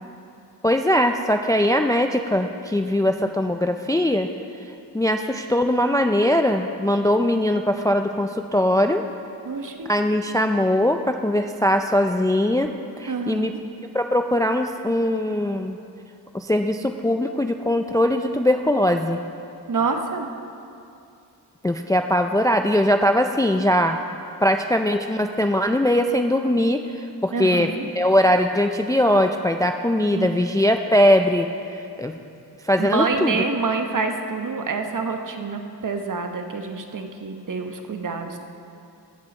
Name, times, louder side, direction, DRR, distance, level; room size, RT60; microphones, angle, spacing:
voice 1, 0.6-4.3 4.9-9.0 9.9-12.7 13.0-13.5 13.9-15.8 16.3-19.2 21.6-24.0 24.4-32.2 32.6-33.3, left 1 dB, 10° left, 6 dB, 0.4 m, -21 dB
voice 2, 9.4-9.9 13.1-13.5 19.7-20.3 27.3-27.9 30.1-30.3 32.8-38.4, right 4 dB, 50° right, 5 dB, 1.0 m, -27 dB
15.5 x 7.5 x 4.3 m, 2.6 s
cardioid pair, 75°, 42 cm